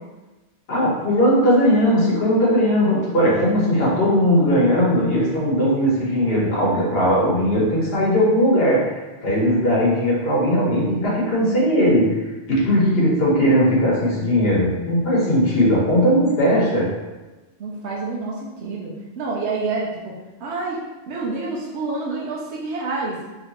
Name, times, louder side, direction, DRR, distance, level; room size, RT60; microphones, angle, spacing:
voice 1, 0.7-8.9 9.2-12.2 12.5-16.9, equal, 65° left, -6 dB, 1.3 m, -18 dB
voice 2, 17.6-20.1 20.4-20.8 21.1-23.2, right 3 dB, 80° right, -3 dB, 0.9 m, -28 dB
3.1 x 2.8 x 2.9 m, 1.1 s
omnidirectional pair, 1.1 m